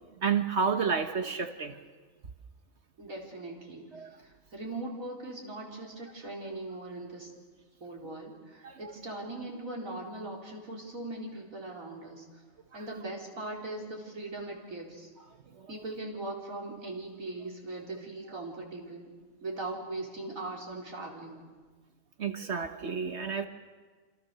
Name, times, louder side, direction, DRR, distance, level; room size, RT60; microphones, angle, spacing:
voice 1, 0.2-1.8 3.9-4.1 8.6-8.9 22.2-23.5, right 6 dB, 55° right, 7 dB, 1.4 m, -30 dB
voice 2, 3.0-3.9 4.2-7.3 7.8-12.2 12.7-15.1 15.7-19.1 19.4-21.4, right 2 dB, 80° right, -2 dB, 4.8 m, -40 dB
27.5 x 27.0 x 6.8 m, 1.4 s
omnidirectional pair, 1.4 m